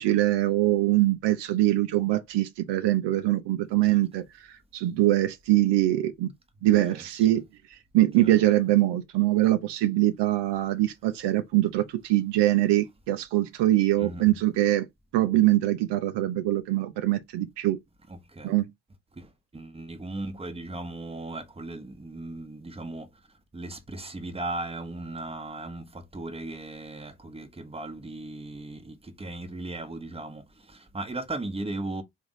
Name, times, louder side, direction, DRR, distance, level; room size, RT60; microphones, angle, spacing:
voice 1, 0.0-6.3 6.6-7.4 7.7-14.9 15.1-17.8 18.4-18.7, right 15 dB, 60° right, 0.7 m, -23 dB
voice 2, 6.6-7.3 8.2-8.3 14.0-14.3 18.1-18.5 19.2-19.3 19.5-23.1 23.5-32.0, right 2 dB, 10° right, 1.0 m, -37 dB
3.4 x 2.5 x 4.1 m
hypercardioid pair, 40°, 47 cm